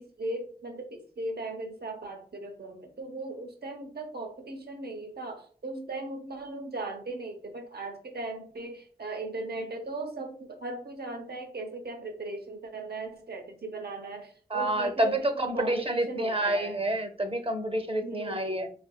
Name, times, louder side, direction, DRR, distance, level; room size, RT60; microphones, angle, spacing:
voice 1, 0.0-16.8 18.0-18.7, right 2 dB, 90° right, 4 dB, 0.7 m, -38 dB
voice 2, 14.5-18.7, right 1 dB, 35° right, 7 dB, 0.6 m, -28 dB
4.0 x 3.3 x 2.2 m, 0.44 s
wide cardioid pair, 75°, 16 cm